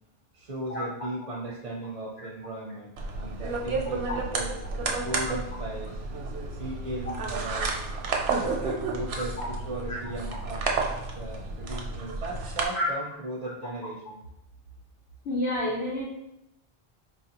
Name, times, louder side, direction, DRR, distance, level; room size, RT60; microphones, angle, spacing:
voice 1, 0.3-4.6 5.0-6.0 6.5-7.7 8.4-14.2, right 2 dB, 50° right, -2 dB, 0.5 m, -37 dB
sound 1, 3.0-12.6, right 3 dB, 85° right, 0.8 m, -31 dB
voice 2, 15.2-16.0, left 1 dB, 85° left, -4 dB, 0.9 m, -30 dB
4.3 x 2.4 x 2.8 m, 0.86 s
omnidirectional pair, 1.0 m